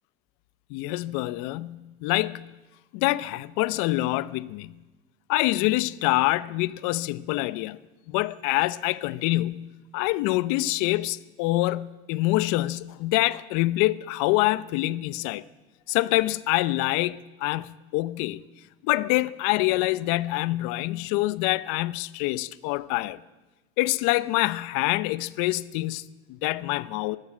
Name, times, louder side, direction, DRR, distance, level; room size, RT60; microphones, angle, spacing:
voice 1, 0.7-2.5 2.9-4.7 5.3-7.8 8.1-9.6 9.9-15.4 15.9-18.4 18.8-23.2 23.8-27.2, left 18 dB, 90° left, 0.8 m, -26 dB
22.5 x 16.0 x 7.6 m
cardioid pair, 135°, 30 cm